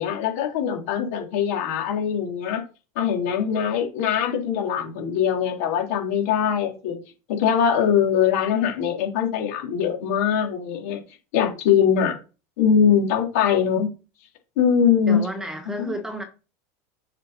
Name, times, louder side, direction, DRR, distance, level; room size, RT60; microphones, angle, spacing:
voice 1, 0.0-2.6 3.0-7.0 7.3-11.0 11.3-12.2 12.6-13.9 14.6-15.3 15.8-15.9, left 8 dB, 75° left, 3.8 m, -22 dB
voice 2, 15.1-16.2, right 1 dB, 5° right, 1.3 m, -31 dB
7.6 x 5.8 x 4.2 m
supercardioid pair, 160°, 8 cm